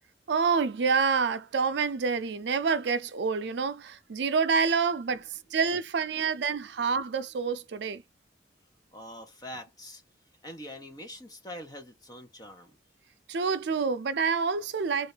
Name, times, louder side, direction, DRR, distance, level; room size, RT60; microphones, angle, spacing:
voice 1, 0.3-5.2 5.5-8.0 13.3-15.1, right 5 dB, 70° right, 0.4 m, -27 dB
voice 2, 5.1-5.6 6.2-6.9 8.9-10.0 10.4-12.8, left 1 dB, 20° left, 1.1 m, -45 dB
3.7 x 2.6 x 3.3 m
head